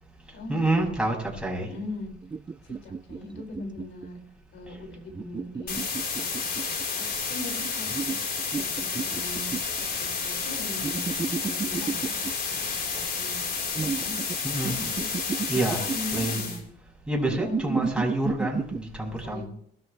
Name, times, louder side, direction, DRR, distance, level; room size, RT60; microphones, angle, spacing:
voice 1, 0.5-1.7 14.4-14.8 15.5-16.5 17.1-19.5, right 1 dB, 5° right, -2 dB, 7.0 m, -28 dB
voice 2, 1.7-2.1 2.6-4.2 4.5-6.4 6.7-9.5 9.8-12.2 12.5-13.4 13.7-14.2 14.6-15.1 15.8-16.6 17.4-18.0 19.2-19.5, left 1 dB, 70° left, 1 dB, 5.9 m, -40 dB
sound 1, 2.2-4.1 5.1-6.9 7.9-9.8 10.8-12.3 13.7-14.4 14.6-16.2 17.3-18.8, right 5 dB, 25° right, 0.5 m, -32 dB
sound 2, 5.7-16.6, left 5 dB, 50° left, 4.6 m, -31 dB
23.5 x 13.0 x 3.4 m, 0.65 s
cardioid pair, 90°, 20 cm